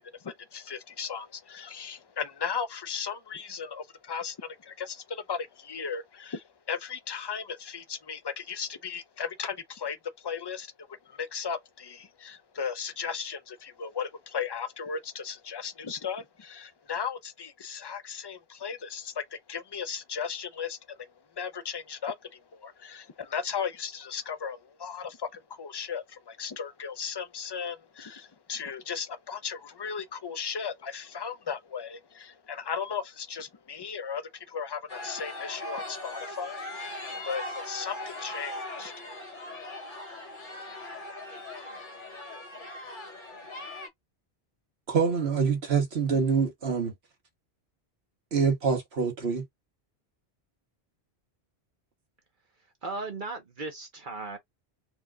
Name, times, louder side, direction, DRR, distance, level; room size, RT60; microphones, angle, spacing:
voice 1, 0.0-38.9, left 6 dB, 35° left, 0.5 m, -36 dB
sound 1, 34.9-43.9, left 1 dB, 50° left, 1.6 m, -39 dB
voice 2, 44.9-46.9 48.3-49.4, right 5 dB, 75° right, 1.5 m, -25 dB
voice 3, 52.8-54.4, right 3 dB, 55° right, 1.0 m, -36 dB
4.4 x 2.2 x 3.5 m
omnidirectional pair, 1.1 m